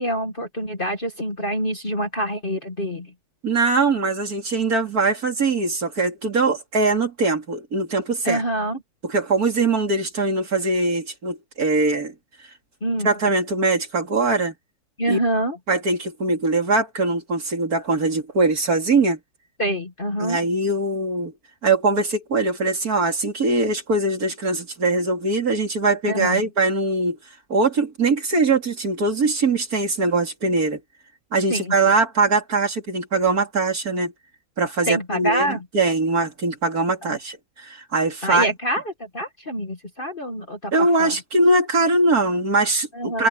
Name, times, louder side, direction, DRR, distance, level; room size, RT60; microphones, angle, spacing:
voice 1, 0.0-3.1 8.2-8.8 12.8-13.1 15.0-15.6 19.6-20.4 26.1-26.4 31.5-31.8 34.9-35.7 37.0-37.1 38.2-40.7 41.0-41.1 42.9-43.3, right 1 dB, 25° left, 1.9 m, -26 dB
voice 2, 3.4-8.4 9.0-12.1 13.0-14.5 15.1-15.2 15.7-19.2 20.2-21.3 21.6-27.2 27.5-30.8 31.3-34.1 34.6-38.5 40.7-43.3, right 3 dB, 50° right, 3.3 m, -21 dB
open air
omnidirectional pair, 2.1 m